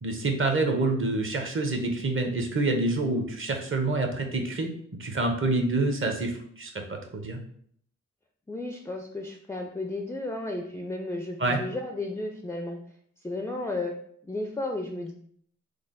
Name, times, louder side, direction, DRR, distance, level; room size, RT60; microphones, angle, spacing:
voice 1, 0.0-4.7 5.0-6.7 7.1-7.4 11.4-11.6, right 2 dB, 35° right, 4 dB, 0.8 m, -27 dB
voice 2, 8.5-12.8 13.2-13.9 14.2-15.1, left 2 dB, 10° left, 3 dB, 0.4 m, -33 dB
3.3 x 2.0 x 3.7 m, 0.63 s
cardioid pair, 55°, 34 cm